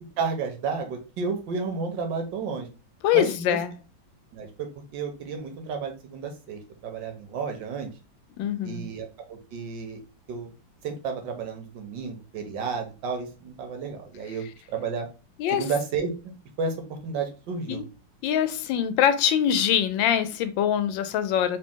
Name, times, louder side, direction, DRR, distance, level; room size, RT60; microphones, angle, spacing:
voice 1, 0.2-2.7 3.1-3.6 4.3-7.9 8.6-10.0 10.3-10.5 10.8-15.1 15.5-16.3 16.6-17.8, right 5 dB, 80° right, 1.6 m, -32 dB
voice 2, 3.0-3.7 8.4-8.9 15.4-15.7 17.7-17.8 18.2-21.6, left 9 dB, 85° left, 1.3 m, -23 dB
4.1 x 2.7 x 3.6 m
omnidirectional pair, 2.0 m